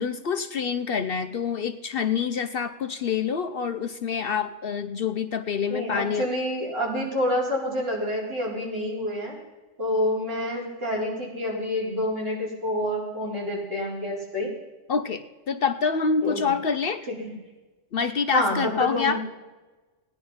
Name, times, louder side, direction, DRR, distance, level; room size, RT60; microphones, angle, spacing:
voice 1, 0.0-6.3 14.9-17.1 17.9-19.2, left 6 dB, 55° left, 9 dB, 0.8 m, -26 dB
voice 2, 5.7-9.4 9.8-14.5 16.2-16.5 18.3-19.2, left 1 dB, 50° right, -5 dB, 4.7 m, -28 dB
16.0 x 10.0 x 5.6 m, 1.2 s
omnidirectional pair, 1.3 m